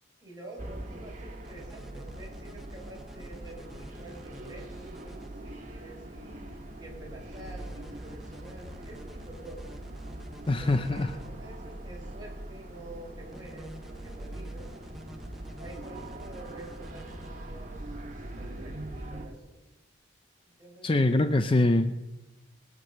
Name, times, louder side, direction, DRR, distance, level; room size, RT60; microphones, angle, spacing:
voice 1, 0.2-9.6 10.6-14.7 15.6-18.0 18.3-19.6 20.6-20.9, right 1 dB, 20° right, -3 dB, 5.9 m, -48 dB
sound 1, 0.6-19.3, right 1 dB, 40° right, 1.9 m, -42 dB
sound 2, 1.4-5.3 7.3-11.3 13.3-17.3, equal, ahead, 0.8 m, -50 dB
voice 2, 10.5-11.1 20.8-22.0, left 2 dB, 25° left, 8 dB, 0.5 m, -24 dB
22.0 x 7.6 x 6.6 m, 1.0 s
head